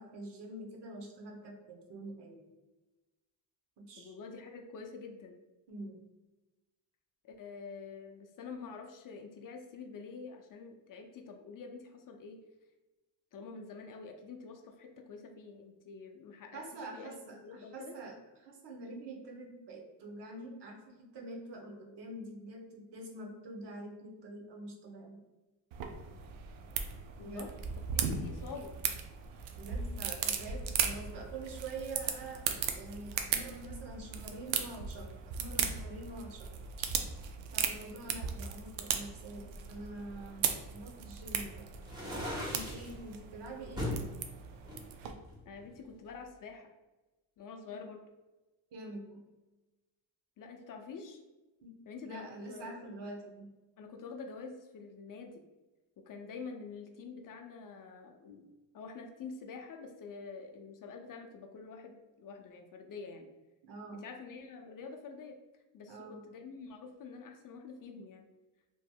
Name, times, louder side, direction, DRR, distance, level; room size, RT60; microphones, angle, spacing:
voice 1, 0.0-2.4 3.8-4.1 5.7-6.0 16.5-18.1 18.4-25.2 27.2-27.5 29.6-32.4 32.7-36.5 37.5-44.1 47.6-47.8 48.7-49.2 51.6-51.7 52.0-53.5 63.7-64.0 65.9-66.2, right 2 dB, 60° right, 1 dB, 0.9 m, -46 dB
voice 2, 4.0-5.4 7.2-12.4 13.3-18.0 27.2-27.5 27.9-28.7 45.5-46.7 47.4-48.0 50.4-51.2 51.9-52.7 53.8-55.4 56.0-58.5 58.7-63.3 63.9-65.4 65.7-68.3, left 5 dB, 45° left, 4 dB, 0.5 m, -47 dB
sound 1, 25.7-45.1, right 7 dB, 75° right, 0.5 m, -37 dB
sound 2, 41.8-42.9 43.8-44.1 44.7-45.7, left 1 dB, 10° right, 1.3 m, -38 dB
3.0 x 2.5 x 2.2 m, 1.1 s
supercardioid pair, 65°, 47 cm